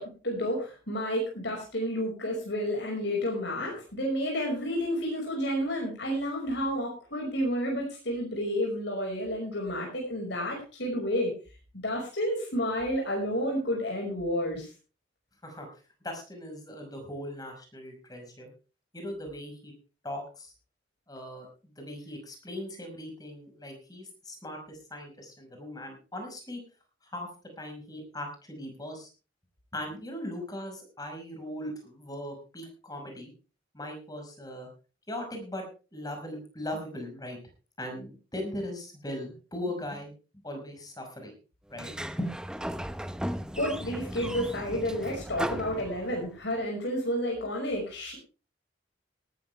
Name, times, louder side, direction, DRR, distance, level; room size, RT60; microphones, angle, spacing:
voice 1, 0.0-11.3 11.7-14.7 43.5-48.1, equal, 70° left, -1 dB, 5.7 m, -30 dB
voice 2, 16.0-18.5 18.9-19.7 20.0-20.5 21.1-26.6 27.0-27.3 27.6-29.1 29.7-33.3 33.7-34.7 35.1-35.6 35.9-37.4 37.8-40.1 40.4-41.3 41.7-42.4, left 1 dB, 20° left, 3 dB, 5.5 m, -39 dB
Sliding door, 41.7-46.4, equal, 5° right, 0.7 m, -36 dB
18.5 x 13.0 x 3.4 m, 0.35 s
head